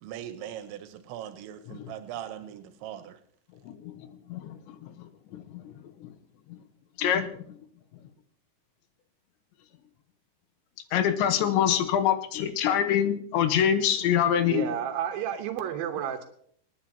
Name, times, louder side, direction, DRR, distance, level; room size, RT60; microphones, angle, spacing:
voice 1, 0.0-3.2, right 11 dB, 85° right, 9 dB, 3.2 m, -40 dB
voice 2, 4.3-4.9 5.3-5.6 6.0-6.1 7.0-7.6 10.9-14.7, left 9 dB, 80° left, 8 dB, 3.3 m, -25 dB
voice 3, 14.4-16.2, right 9 dB, 70° right, 3 dB, 2.3 m, -31 dB
26.5 x 9.6 x 2.8 m, 0.62 s
omnidirectional pair, 5.3 m